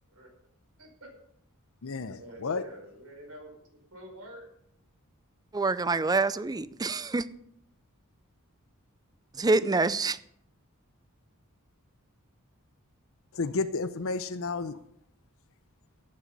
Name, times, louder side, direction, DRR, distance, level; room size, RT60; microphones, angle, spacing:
voice 1, 0.8-1.1 2.2-3.5 3.9-4.5, right 1 dB, 70° right, 5.0 m, -46 dB
voice 2, 1.8-2.6 13.3-14.8, left 4 dB, 65° left, 0.7 m, -31 dB
voice 3, 5.5-7.3 9.4-10.2, right 3 dB, 20° right, 0.5 m, -26 dB
16.5 x 7.7 x 5.5 m
head